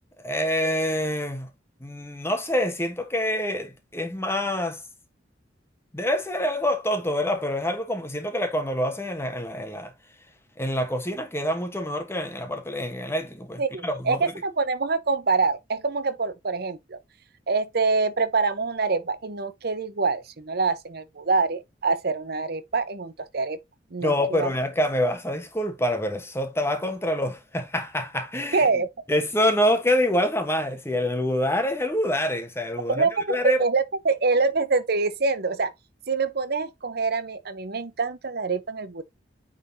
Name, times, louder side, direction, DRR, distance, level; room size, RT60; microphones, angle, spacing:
voice 1, 0.2-1.5 1.8-4.8 5.9-9.9 10.6-14.2 24.0-28.7 29.1-33.6, left 1 dB, 15° left, 1.2 m, -26 dB
voice 2, 13.6-17.0 17.5-23.6 23.9-24.5 28.5-28.9 32.9-35.7 36.1-39.0, right 4 dB, 60° right, 0.8 m, -25 dB
9.2 x 3.9 x 2.8 m
head